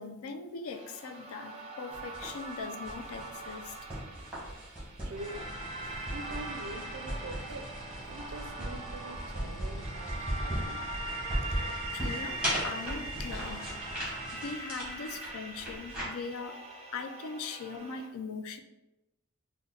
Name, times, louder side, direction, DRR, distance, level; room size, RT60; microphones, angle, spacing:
voice 1, 0.0-3.7 11.9-13.7 14.3-16.6 16.9-18.6, left 4 dB, 65° left, 8 dB, 0.4 m, -40 dB
sound 1, 0.7-18.1, right 2 dB, 30° right, 0.6 m, -42 dB
sound 2, 1.9-16.0, right 1 dB, 5° right, 1.3 m, -38 dB
voice 2, 5.0-5.5 6.1-7.7 8.0-11.8 13.4-13.6, right 2 dB, 80° right, 7 dB, 0.4 m, -45 dB
sound 3, 5.2-14.5, equal, 15° left, 0.6 m, -48 dB
4.1 x 2.1 x 3.8 m, 0.99 s
head